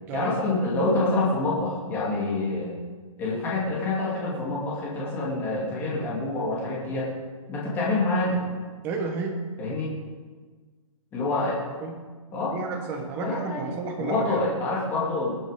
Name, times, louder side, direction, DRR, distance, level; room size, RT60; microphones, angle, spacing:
voice 1, 0.1-2.7 3.2-7.1 7.5-8.4 9.6-10.0 11.1-11.6 12.3-12.6 13.2-13.6 14.0-15.4, left 2 dB, 10° left, -5 dB, 2.3 m, -27 dB
voice 2, 8.8-9.4 11.8-12.0 12.5-14.4, right 4 dB, 10° right, 3 dB, 1.2 m, -31 dB
19.5 x 8.6 x 5.1 m, 1.4 s
hypercardioid pair, 175°, 18 cm